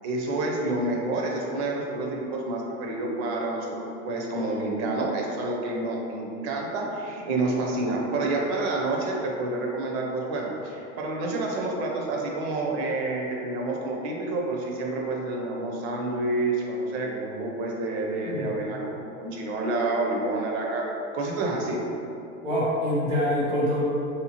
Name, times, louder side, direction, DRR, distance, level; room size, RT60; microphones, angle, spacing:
voice 1, 0.0-20.9 21.1-21.8, right 2 dB, 55° right, -1 dB, 0.7 m, -28 dB
voice 2, 18.3-18.6 22.4-23.8, equal, 15° right, -7 dB, 0.3 m, -25 dB
3.3 x 2.8 x 2.8 m, 2.8 s
hypercardioid pair, 115°, 40 cm